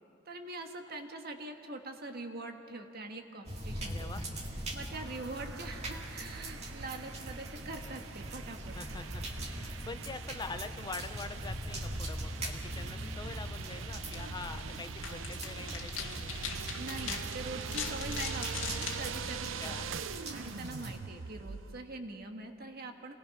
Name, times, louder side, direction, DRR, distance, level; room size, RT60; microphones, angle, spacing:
voice 1, 0.3-4.1 4.7-8.7 16.8-20.0 20.3-23.2, right 2 dB, 50° right, 4 dB, 1.6 m, -43 dB
sound 1, 3.4-21.0, right 1 dB, 35° right, 2.0 m, -42 dB
voice 2, 3.8-4.2 8.7-16.6 19.3-19.9, left 3 dB, 20° left, 10 dB, 0.5 m, -45 dB
sound 2, 4.9-21.8, right 6 dB, 75° right, 0.6 m, -43 dB
sound 3, 13.3-20.1, left 7 dB, 80° left, 1.8 m, -43 dB
27.0 x 19.5 x 5.9 m, 3.0 s
head